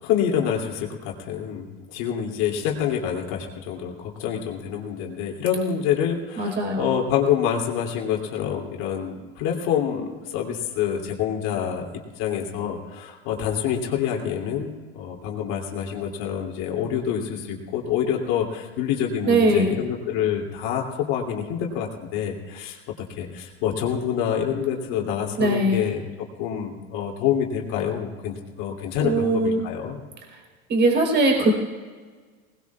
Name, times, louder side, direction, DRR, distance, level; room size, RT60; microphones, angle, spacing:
voice 1, 0.0-22.8 23.1-30.0, left 8 dB, 65° left, 0 dB, 2.9 m, -27 dB
voice 2, 6.4-6.9 19.3-19.7 25.4-25.8 29.0-29.7 30.7-31.5, right 2 dB, 40° right, 1 dB, 4.1 m, -20 dB
20.0 x 19.5 x 2.4 m, 1.5 s
supercardioid pair, 115°, 29 cm